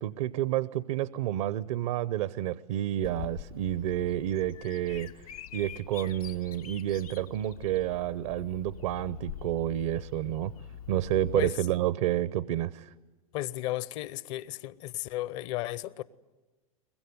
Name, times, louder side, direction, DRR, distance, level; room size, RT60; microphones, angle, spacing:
voice 1, 0.0-5.1 5.5-10.5 10.9-12.9, right 13 dB, 65° right, 0.7 m, -30 dB
Bird vocalization bird call bird song, 3.0-11.5, left 9 dB, 80° left, 1.0 m, -44 dB
voice 2, 13.3-16.0, left 16 dB, 55° left, 0.9 m, -34 dB
23.0 x 21.5 x 9.4 m
hypercardioid pair, 105°, 18 cm